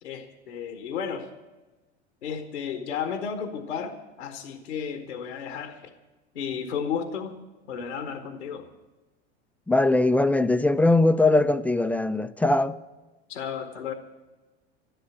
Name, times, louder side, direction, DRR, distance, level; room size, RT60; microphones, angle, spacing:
voice 1, 0.0-1.3 2.2-5.9 6.3-7.4 7.7-8.7 13.3-13.9, left 7 dB, 90° left, 1.3 m, -33 dB
voice 2, 9.7-12.8, left 2 dB, 5° left, 0.4 m, -21 dB
12.5 x 11.5 x 8.4 m
hypercardioid pair, 95°, 34 cm